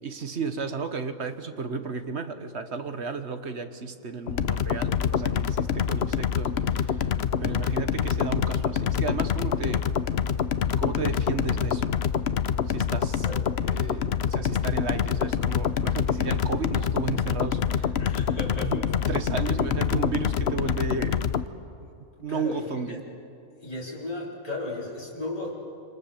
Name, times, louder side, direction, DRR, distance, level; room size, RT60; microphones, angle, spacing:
voice 1, 0.0-7.1 7.4-9.9 10.8-11.9 12.7-13.3 13.6-17.9 18.6-21.2 22.2-23.0, right 5 dB, 50° right, 8 dB, 1.5 m, -33 dB
sound 1, 4.3-21.5, left 8 dB, 55° left, 0.9 m, -26 dB
voice 2, 18.0-18.7 22.3-23.0 23.6-25.5, left 2 dB, 25° left, -5 dB, 4.0 m, -35 dB
27.5 x 27.0 x 7.2 m, 2.6 s
omnidirectional pair, 1.5 m